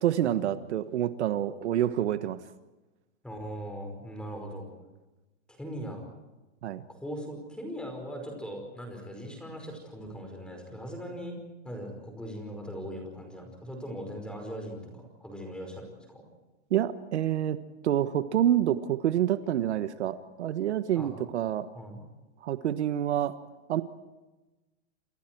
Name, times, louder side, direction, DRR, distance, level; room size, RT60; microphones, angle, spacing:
voice 1, 0.0-2.4 6.6-6.8 16.7-17.6 17.8-21.7 22.4-23.3 23.7-23.8, right 11 dB, 70° right, 11 dB, 1.4 m, -27 dB
voice 2, 3.2-4.7 5.5-6.1 6.9-11.3 11.6-16.2 21.0-21.1 21.7-22.0, equal, 5° left, 4 dB, 5.2 m, -40 dB
28.0 x 28.0 x 4.7 m, 1.1 s
supercardioid pair, 170°, 36 cm